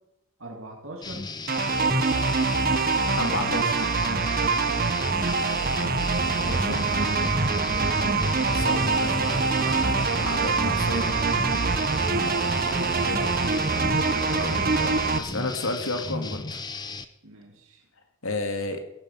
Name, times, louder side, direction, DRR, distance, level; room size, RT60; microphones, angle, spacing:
voice 1, 0.4-1.3 1.6-2.0 5.3-6.1 7.6-8.5 10.9-14.0 17.2-17.9, right 1 dB, 65° right, 0 dB, 2.6 m, -42 dB
sound 1, 1.0-17.1, left 3 dB, 20° left, 0.8 m, -35 dB
sound 2, 1.5-15.2, right 4 dB, 45° right, 0.8 m, -24 dB
voice 2, 3.2-3.9 6.2-6.9 8.5-11.1 14.3-16.6 18.2-18.8, left 2 dB, 75° left, 6 dB, 2.2 m, -33 dB
sound 3, 6.2-15.1, right 1 dB, 10° right, 0.4 m, -35 dB
17.0 x 11.0 x 5.7 m, 0.85 s
head